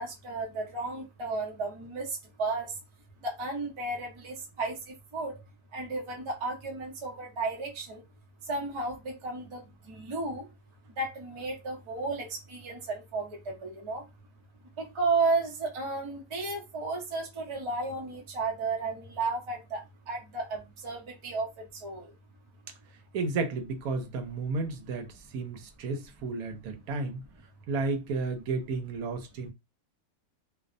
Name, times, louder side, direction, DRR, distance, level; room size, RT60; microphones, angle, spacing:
voice 1, 0.0-2.7 3.2-5.4 5.7-8.0 8.5-10.5 11.0-14.0 14.8-22.1, right 3 dB, 30° right, 0.5 m, -33 dB
voice 2, 23.1-27.2 27.7-29.5, right 3 dB, 85° right, 1.1 m, -32 dB
2.6 x 2.1 x 2.5 m
omnidirectional pair, 1.5 m